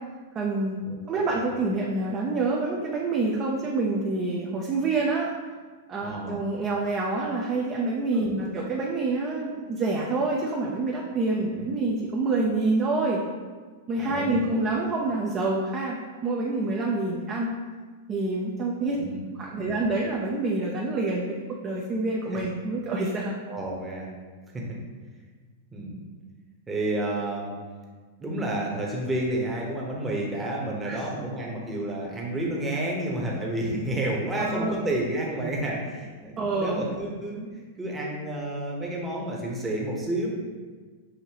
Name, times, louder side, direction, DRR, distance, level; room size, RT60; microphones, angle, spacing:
voice 1, 0.3-0.8 1.1-5.3 5.9-13.2 13.9-17.5 18.1-19.0 19.4-23.3 30.8-31.0 34.4-34.8 36.4-36.8, right 3 dB, 30° right, -2 dB, 0.5 m, -27 dB
voice 2, 6.0-6.4 8.1-8.3 11.3-11.4 14.0-14.6 18.9-19.2 19.5-19.7 23.5-24.1 24.5-24.6 25.7-26.0 26.7-27.5 28.2-37.4 37.8-40.3, right 1 dB, 15° right, -2 dB, 1.0 m, -30 dB
6.4 x 2.7 x 2.9 m, 1.4 s
hypercardioid pair, 125°, 0 cm